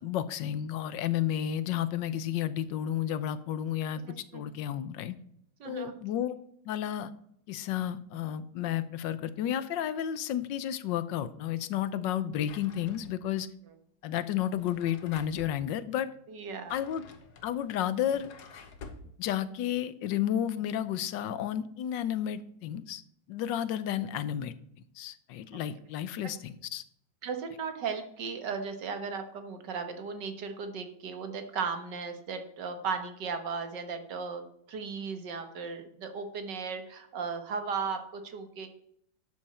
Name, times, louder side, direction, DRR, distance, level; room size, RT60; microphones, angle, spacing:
voice 1, 0.0-4.0 4.3-5.1 5.6-6.4 6.7-7.1 7.5-13.5 14.0-16.1 16.7-17.1 17.4-18.3 19.2-23.0 23.3-24.5 25.0-26.8, left 10 dB, 90° left, 14 dB, 1.4 m, -32 dB
voice 2, 5.6-5.9 16.3-16.8 27.2-38.7, right 5 dB, 75° right, 7 dB, 2.0 m, -36 dB
Drawer open or close, 12.4-13.4 14.4-15.6 16.4-19.1, left 5 dB, 65° left, 1.6 m, -49 dB
12.0 x 8.0 x 4.3 m, 0.71 s
omnidirectional pair, 1.9 m